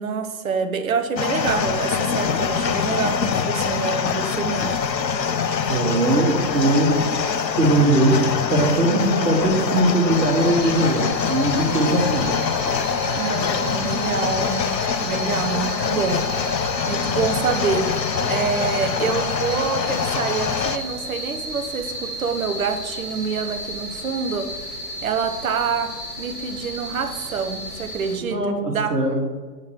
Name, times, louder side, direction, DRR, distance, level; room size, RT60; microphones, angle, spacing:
voice 1, 0.0-4.7 13.2-16.2 16.9-17.9 18.2-24.5 25.0-25.9 26.2-28.4 28.7-29.0, right 6 dB, 55° right, 7 dB, 0.9 m, -26 dB
sound 1, 1.2-20.8, left 6 dB, 85° left, 0.6 m, -24 dB
voice 2, 5.7-6.9 7.5-8.1 8.5-12.3 28.2-29.1, right 2 dB, 70° right, -1 dB, 2.1 m, -20 dB
sound 2, 10.1-28.2, right 1 dB, 5° right, 0.6 m, -34 dB
9.0 x 5.7 x 3.1 m, 1.4 s
figure-of-eight pair, 125°, 49 cm